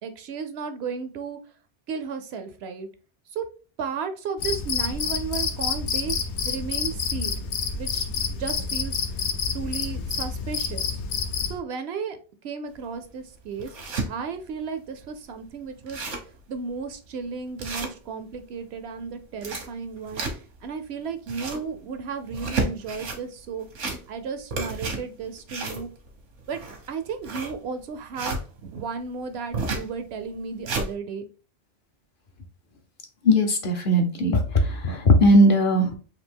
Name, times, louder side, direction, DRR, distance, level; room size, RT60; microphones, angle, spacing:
voice 1, 0.0-1.4 1.9-2.9 3.3-3.4 3.8-7.4 7.7-9.0 9.5-11.0 11.5-12.2 12.4-13.8 14.0-16.0 16.5-20.2 20.6-23.7 24.1-25.9 26.5-26.6 26.9-31.3, right 5 dB, 70° right, 9 dB, 0.8 m, -34 dB
Cricket, 4.4-11.6, left 5 dB, 75° left, 1.0 m, -28 dB
sound 1, 12.7-12.8 13.3-14.1 14.6-14.7 15.0-15.1 15.5-15.6 15.8-16.4 16.8-16.9 17.6-18.4 19.2-20.6 21.1-21.7 22.2-23.2 23.6-24.2 24.5-28.4 29.5-29.9 30.3-30.9, right 3 dB, 85° right, 1.3 m, -31 dB
voice 2, 33.2-35.9, equal, 55° left, 4 dB, 0.8 m, -18 dB
4.0 x 2.7 x 3.5 m, 0.36 s
omnidirectional pair, 1.2 m